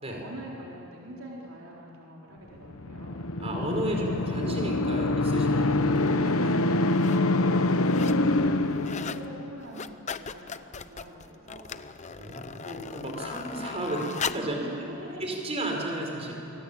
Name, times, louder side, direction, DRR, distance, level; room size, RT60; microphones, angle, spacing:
voice 1, 0.0-3.2 7.1-11.9 12.2-12.8 14.5-15.2, right 1 dB, 70° right, -4 dB, 4.0 m, -45 dB
sound 1, 2.6-9.6, left 2 dB, 75° left, 1.0 m, -25 dB
voice 2, 3.4-6.6 8.2-8.4 12.1-14.7 15.2-16.3, right 1 dB, 30° right, 1 dB, 5.3 m, -33 dB
sound 2, 6.0-6.1 6.8-7.2 7.6-8.3 8.6-9.3 9.6-14.6 15.2-15.3, left 6 dB, 35° left, 0.7 m, -38 dB
27.5 x 24.5 x 8.7 m, 3.0 s
head